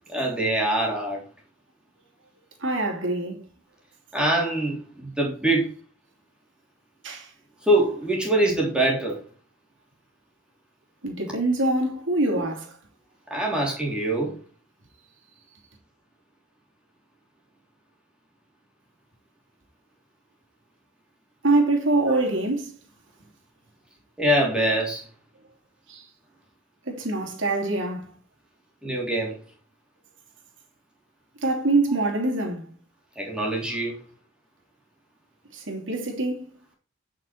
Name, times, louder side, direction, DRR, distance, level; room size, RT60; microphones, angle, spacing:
voice 1, 0.1-1.2 4.1-5.7 7.7-9.2 12.3-12.4 13.3-14.3 24.2-25.0 28.8-29.3 33.2-34.0, right 1 dB, 5° right, 3.2 m, -24 dB
voice 2, 2.6-3.5 7.0-7.3 11.0-12.8 21.4-22.8 25.9-26.1 26.9-28.1 31.4-32.7 35.5-36.4, right 2 dB, 65° right, 2.9 m, -24 dB
10.0 x 6.3 x 4.5 m
head